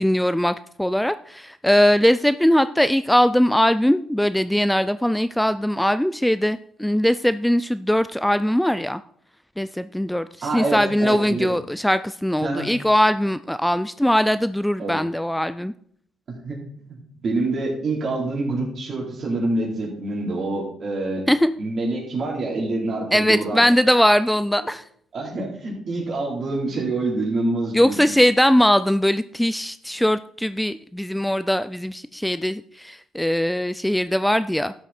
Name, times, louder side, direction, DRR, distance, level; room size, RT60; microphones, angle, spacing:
voice 1, 0.0-9.0 9.6-15.7 21.3-21.5 23.1-24.9 27.7-34.7, equal, 5° left, 13 dB, 0.3 m, -20 dB
voice 2, 10.4-11.5 12.4-12.7 14.8-14.9 16.3-16.6 16.9-21.2 21.6-23.6 25.1-28.0, right 2 dB, 55° right, -2 dB, 3.8 m, -26 dB
12.0 x 7.7 x 4.3 m, 0.63 s
cardioid pair, 90°, 0 cm